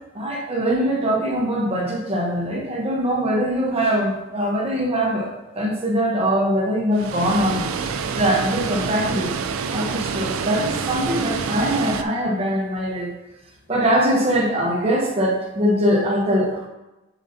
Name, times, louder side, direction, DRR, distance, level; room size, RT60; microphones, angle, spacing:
voice 1, 0.1-7.8 8.1-9.3 9.7-13.1 13.7-16.7, equal, 30° right, -1 dB, 1.0 m, -22 dB
Water, 6.9-12.0, right 5 dB, 85° right, 0.4 m, -27 dB
7.0 x 5.5 x 2.8 m, 1.0 s
head